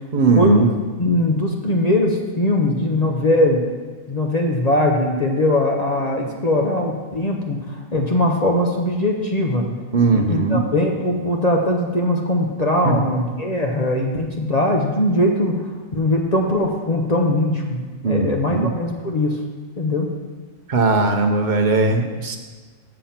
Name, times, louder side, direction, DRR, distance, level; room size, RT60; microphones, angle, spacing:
voice 1, 0.1-0.7 9.9-10.6 12.8-13.0 18.0-18.7 20.7-22.4, right 3 dB, 40° right, 3 dB, 0.8 m, -18 dB
voice 2, 1.0-3.6 4.1-9.6 10.1-19.4 19.8-20.1, left 1 dB, 35° left, 0 dB, 0.7 m, -20 dB
7.4 x 6.9 x 5.7 m, 1.4 s
omnidirectional pair, 1.4 m